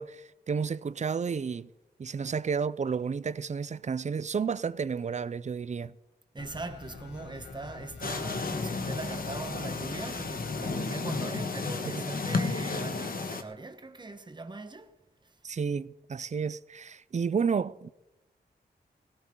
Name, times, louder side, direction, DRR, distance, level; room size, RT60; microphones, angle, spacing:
voice 1, 0.0-1.7 2.0-5.9 11.8-12.0 15.4-17.9, right 6 dB, 45° right, 0.5 m, -31 dB
voice 2, 6.3-14.9, right 3 dB, 25° right, 1.2 m, -41 dB
sound 1, 6.4-10.8, left 4 dB, 80° left, 1.9 m, -47 dB
sound 2, 8.0-13.4, left 4 dB, 55° left, 1.4 m, -33 dB
17.5 x 17.0 x 3.8 m
wide cardioid pair, 90°, 17 cm